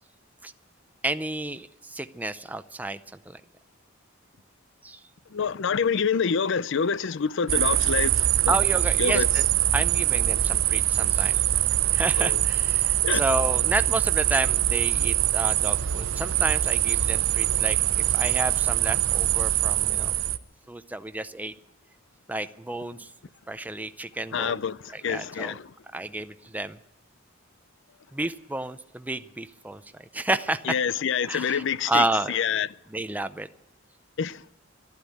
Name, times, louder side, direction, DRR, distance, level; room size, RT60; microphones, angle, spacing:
voice 1, 1.0-3.0 3.3-3.4 4.8-5.0 8.5-9.5 9.7-11.4 11.9-17.8 18.1-20.1 20.7-21.5 22.3-23.1 23.5-24.6 24.9-25.5 25.9-26.8 28.1-29.8 30.1-30.6 31.3-32.3 32.9-33.5, right 2 dB, 10° right, 0.5 m, -31 dB
voice 2, 5.3-8.6 9.0-9.3 12.2-12.4 13.0-13.2 24.3-25.7 30.6-32.7 34.2-34.5, left 6 dB, 65° left, 0.5 m, -27 dB
sound 1, 7.5-20.4, right 12 dB, 85° right, 0.6 m, -23 dB
12.5 x 11.5 x 9.2 m
head